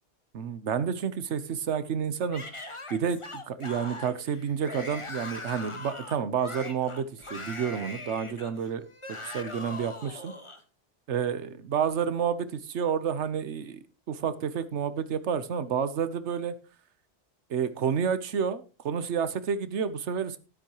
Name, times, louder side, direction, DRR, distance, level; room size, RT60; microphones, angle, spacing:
voice 1, 0.3-2.6 2.9-10.3 11.1-16.5 17.5-20.4, right 7 dB, 85° right, 13 dB, 1.2 m, -30 dB
Yell / Screaming, 2.3-10.6, left 2 dB, 25° left, 1.4 m, -41 dB
13.0 x 11.5 x 3.0 m, 0.31 s
omnidirectional pair, 1.2 m